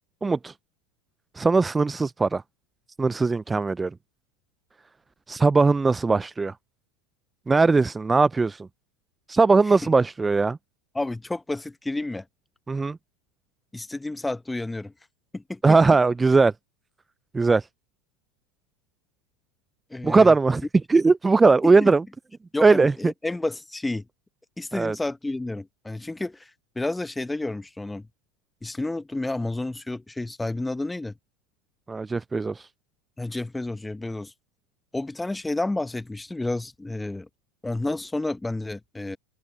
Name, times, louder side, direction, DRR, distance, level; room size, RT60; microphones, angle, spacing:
voice 1, 0.2-0.5 1.4-2.4 3.0-3.9 5.3-6.5 7.5-8.7 9.3-10.6 12.7-13.0 15.6-16.5 17.3-17.7 20.0-20.6 20.9-22.0 22.6-22.9 24.7-25.0 31.9-32.7, right 4 dB, 15° right, 0.3 m, -19 dB
voice 2, 10.9-12.2 13.7-14.9 15.3-15.8 19.9-20.4 21.6-21.9 22.5-24.1 24.6-26.5 26.7-28.1 28.6-31.1 33.2-34.3 34.9-37.3 37.6-39.2, left 2 dB, 10° left, 1.2 m, -30 dB
hypercardioid pair, 95°, 0 cm